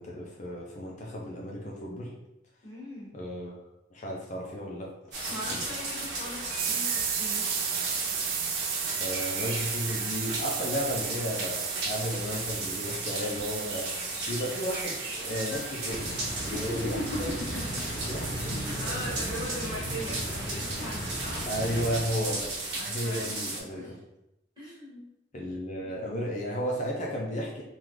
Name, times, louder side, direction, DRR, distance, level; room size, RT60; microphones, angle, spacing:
voice 1, 0.0-2.1 3.1-3.6 3.9-5.6 9.0-17.4 18.1-19.0 21.5-22.5 22.8-23.9 25.3-27.6, equal, 40° left, -2 dB, 0.5 m, -34 dB
voice 2, 2.6-3.1 5.3-7.4 16.5-18.0 18.3-21.5 22.7-23.3 23.8-23.9 24.6-25.0, equal, 25° right, -8 dB, 1.5 m, -39 dB
sound 1, 5.1-23.6, right 2 dB, 70° right, 0.8 m, -35 dB
sound 2, 6.6-17.2, right 7 dB, 50° right, 0.4 m, -35 dB
sound 3, 15.9-22.6, equal, 80° left, 0.7 m, -37 dB
3.6 x 2.4 x 3.0 m, 0.87 s
head